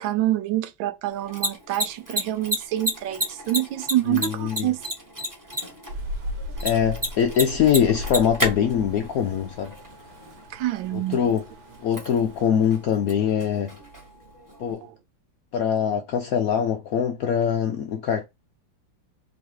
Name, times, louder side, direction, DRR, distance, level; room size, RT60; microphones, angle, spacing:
voice 1, 0.0-4.8 6.9-7.0 10.5-11.4 14.8-14.9 15.7-15.9, right 14 dB, 85° right, 1.4 m, -27 dB
Mechanisms, 1.1-14.7, equal, 10° right, 1.1 m, -33 dB
voice 2, 4.1-4.7 6.6-9.8 10.9-11.4 11.8-13.8 14.6-14.9 15.5-18.3, left 8 dB, 75° left, 0.8 m, -23 dB
Rain, 5.9-12.9, left 1 dB, 65° right, 1.5 m, -37 dB
3.8 x 3.0 x 4.6 m
omnidirectional pair, 2.1 m